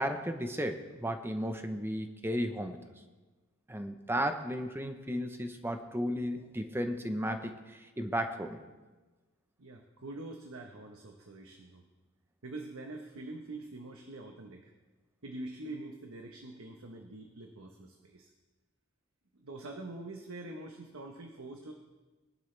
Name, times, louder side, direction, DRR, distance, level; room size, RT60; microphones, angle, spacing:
voice 1, 0.0-2.8 3.7-8.6, equal, 10° right, 6 dB, 0.9 m, -34 dB
voice 2, 9.6-11.8 12.4-14.7 15.2-18.3 19.3-21.7, right 2 dB, 85° right, 3 dB, 1.2 m, -45 dB
21.5 x 11.5 x 3.4 m, 1.2 s
head